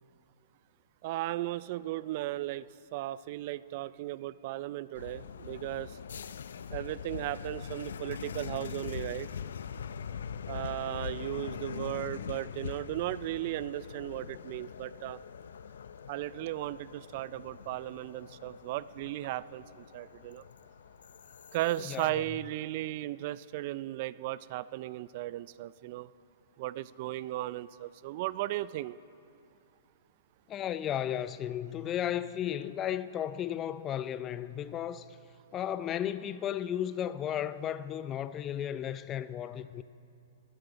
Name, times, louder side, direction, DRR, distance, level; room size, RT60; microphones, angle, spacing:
voice 1, 1.0-2.7 2.9-5.9 6.7-9.3 10.5-15.2 16.1-20.4 21.5-26.1 26.6-29.0, right 15 dB, 50° right, 0.3 m, -36 dB
sound 1, 4.9-22.1, left 7 dB, 75° left, 0.5 m, -43 dB
voice 2, 21.8-22.2 30.5-35.1 35.5-39.8, left 10 dB, 25° left, 0.5 m, -34 dB
20.5 x 14.5 x 4.0 m
hypercardioid pair, 130°, 0 cm